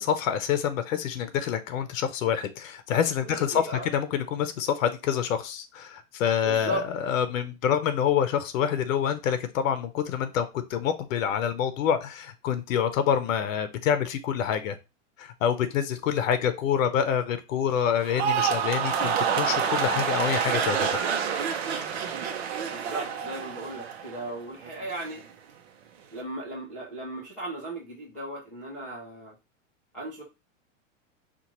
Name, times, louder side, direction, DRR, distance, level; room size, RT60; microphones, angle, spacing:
voice 1, 0.0-14.8 15.2-21.0, left 8 dB, 85° left, 10 dB, 0.7 m, -27 dB
voice 2, 3.2-3.9 6.4-6.8 7.6-7.8 15.9-16.2 22.7-25.2 26.1-29.3 29.9-30.2, right 2 dB, 5° left, -12 dB, 0.3 m, -37 dB
sound 1, 18.0-24.3 24.6-25.1, right 7 dB, 55° right, 0.7 m, -28 dB
5.2 x 2.4 x 2.9 m, 0.27 s
supercardioid pair, 175°, 39 cm